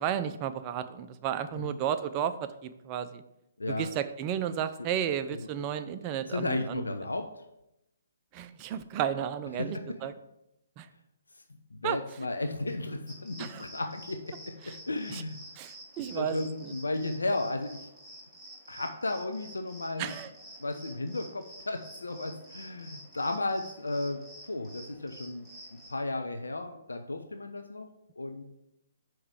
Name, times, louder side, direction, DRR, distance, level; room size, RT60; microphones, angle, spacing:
voice 1, 0.0-3.2 3.7-6.8 8.3-10.1 10.8-10.9 11.8-12.0 13.4-13.6 14.6-14.7 15.1-15.2 15.6-16.7 20.0-20.3, right 9 dB, 30° right, 10 dB, 0.4 m, -33 dB
voice 2, 5.3-5.7 6.3-7.4 9.5-9.7 11.7-15.4 16.1-17.9 18.7-20.2 20.6-25.5 25.9-27.9 28.2-28.4, left 2 dB, 75° left, 6 dB, 0.5 m, -34 dB
sound 1, 13.1-25.9, right 1 dB, ahead, 1.4 m, -50 dB
5.6 x 4.6 x 4.7 m, 0.87 s
figure-of-eight pair, 130°, 0 cm